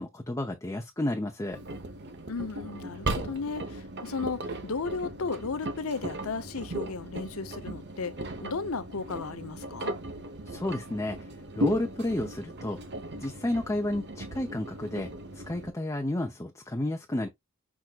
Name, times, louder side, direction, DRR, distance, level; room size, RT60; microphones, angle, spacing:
voice 1, 0.0-1.6 10.5-11.3 11.5-12.8 13.2-17.3, left 1 dB, 15° left, 0.6 m, -31 dB
Engine, 1.5-15.7, right 1 dB, 50° right, 1.0 m, -37 dB
voice 2, 2.3-9.9, left 4 dB, 80° left, 0.8 m, -35 dB
6.0 x 3.6 x 2.4 m
head